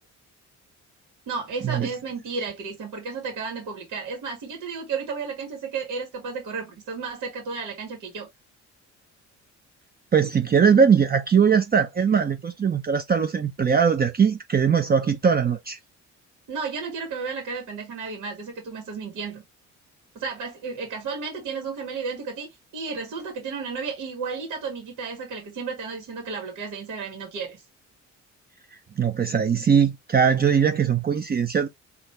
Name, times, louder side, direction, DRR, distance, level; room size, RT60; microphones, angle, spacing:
voice 1, 1.3-8.3 16.5-19.4 20.2-22.5 22.7-27.6, right 5 dB, 80° right, 1.9 m, -33 dB
voice 2, 10.1-15.8 29.0-31.7, right 6 dB, 30° right, 0.6 m, -20 dB
3.9 x 2.8 x 3.2 m
cardioid pair, 90°, 30 cm